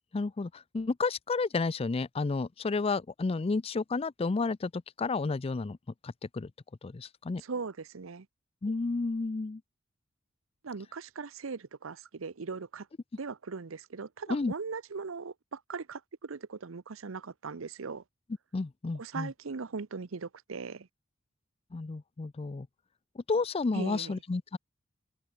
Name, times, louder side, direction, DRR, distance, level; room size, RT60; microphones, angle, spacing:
voice 1, 0.1-5.8 6.0-6.5 6.8-7.4 8.6-9.6 14.3-14.5 18.5-19.3 21.7-22.7 23.2-24.6, left 3 dB, 30° left, 0.4 m, -31 dB
voice 2, 7.4-8.3 10.6-12.9 13.2-18.0 19.0-20.9 23.7-24.2, right 4 dB, 85° right, 0.7 m, -39 dB
open air
head